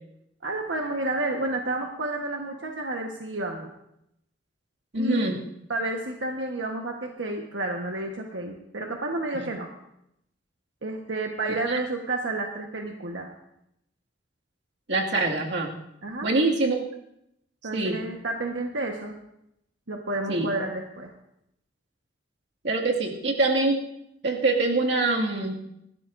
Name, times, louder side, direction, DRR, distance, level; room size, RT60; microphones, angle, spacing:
voice 1, 0.4-3.7 5.0-5.3 5.7-9.7 10.8-13.3 16.0-16.3 17.6-19.1 19.9-21.1, right 2 dB, 90° right, 1 dB, 1.3 m, -30 dB
voice 2, 4.9-5.4 9.3-9.5 11.7-11.8 14.9-15.7 16.2-16.8 17.7-18.0 20.3-20.5 22.6-23.8 24.2-25.6, right 2 dB, 65° right, 0 dB, 2.1 m, -24 dB
26.0 x 13.0 x 2.6 m, 0.80 s
head